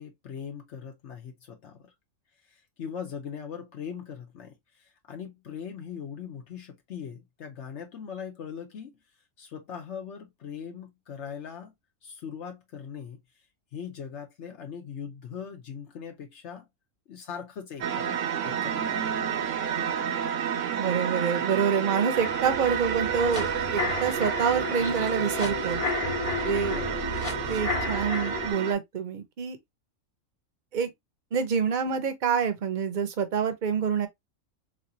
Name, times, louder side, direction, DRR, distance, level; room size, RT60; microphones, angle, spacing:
voice 1, 0.0-1.9 2.4-9.0 9.4-11.7 12.0-13.2 13.7-16.7 17.1-19.1 26.6-27.0, left 7 dB, 65° left, 1.0 m, -40 dB
sound 1, 17.8-28.7, right 8 dB, 70° right, 1.0 m, -30 dB
voice 2, 20.8-25.8 26.4-26.8 27.5-29.6 30.7-30.9 31.3-34.1, right 6 dB, 45° right, 0.8 m, -27 dB
sound 2, 22.2-28.5, left 4 dB, 25° left, 1.1 m, -32 dB
3.8 x 3.2 x 2.6 m
omnidirectional pair, 1.4 m